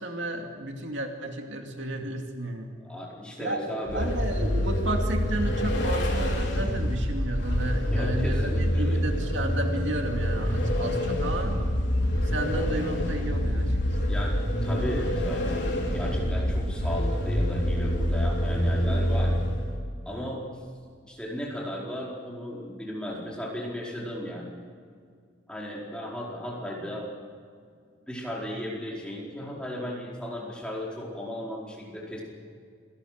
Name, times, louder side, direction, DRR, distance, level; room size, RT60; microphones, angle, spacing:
voice 1, 0.0-2.7 3.4-3.6 3.9-11.6 12.2-13.8, right 1 dB, 70° right, 3 dB, 2.5 m, -32 dB
voice 2, 2.8-4.1 7.9-9.0 12.0-12.3 14.1-14.4 14.6-19.4 20.0-20.5 21.0-24.5 25.5-27.1 28.1-32.2, equal, 5° left, -4 dB, 4.6 m, -35 dB
Vehicle, 3.9-19.8, equal, 60° left, 4.4 m, -26 dB
27.0 x 18.5 x 6.7 m, 2.1 s
head